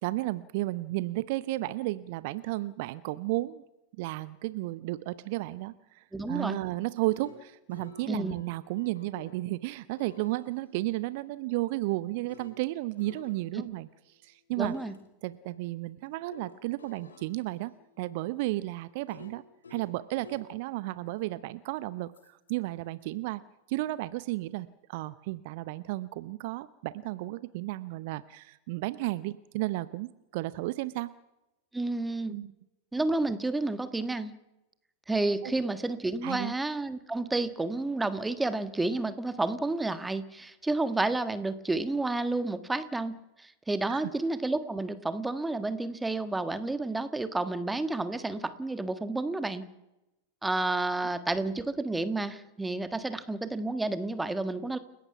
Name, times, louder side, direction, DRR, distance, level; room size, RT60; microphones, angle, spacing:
voice 1, 0.0-3.6 4.0-13.9 14.2-14.7 15.2-17.7 18.0-19.4 19.7-23.4 23.7-31.1 32.3-32.5 35.4-35.5 36.2-36.5 43.9-44.0, right 18 dB, 50° right, 16 dB, 0.7 m, -33 dB
voice 2, 6.1-6.6 8.1-8.3 14.6-14.9 31.7-32.3 32.9-34.3 35.1-49.6 50.4-54.8, right 2 dB, 10° right, 11 dB, 1.5 m, -30 dB
sound 1, 6.8-9.4 10.0-14.1 14.6-15.0 16.3-20.5 22.1-22.5, left 3 dB, 70° left, 2.7 m, -52 dB
29.5 x 17.0 x 5.8 m, 0.94 s
figure-of-eight pair, 90°, 0 cm